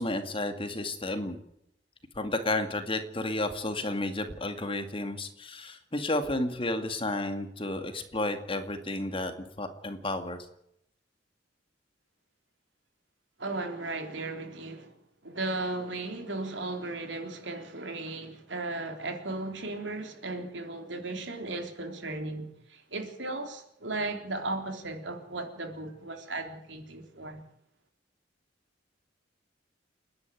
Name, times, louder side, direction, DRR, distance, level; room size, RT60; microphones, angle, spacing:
voice 1, 0.0-1.4 2.2-10.4, left 2 dB, 30° left, 2.2 m, -32 dB
voice 2, 13.4-14.9 15.2-27.4, right 2 dB, 75° right, 3.7 m, -36 dB
29.0 x 10.5 x 9.3 m
head